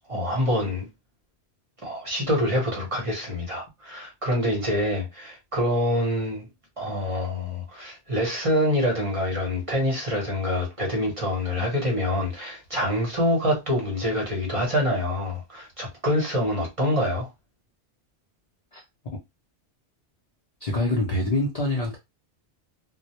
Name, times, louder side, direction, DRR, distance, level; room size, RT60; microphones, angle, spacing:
voice 1, 0.1-0.9 1.8-6.5 6.8-17.3, left 1 dB, 35° right, 0.8 m, -26 dB
voice 2, 20.6-22.0, left 1 dB, 50° left, 0.5 m, -25 dB
2.1 x 2.1 x 2.8 m
omnidirectional pair, 1.2 m